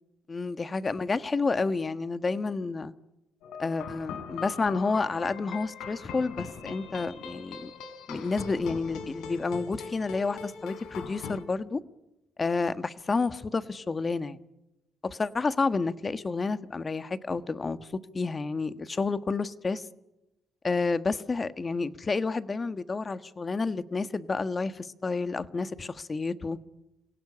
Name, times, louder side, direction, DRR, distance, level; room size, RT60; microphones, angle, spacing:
voice 1, 0.3-2.9 3.6-7.7 8.1-11.8 12.4-14.4 15.0-17.9 18.1-19.9 20.6-26.6, left 4 dB, 30° left, 1.5 m, -30 dB
sound 1, 3.4-11.4, left 6 dB, 90° left, 3.7 m, -41 dB
28.5 x 18.0 x 9.9 m
cardioid pair, 90°, 0 cm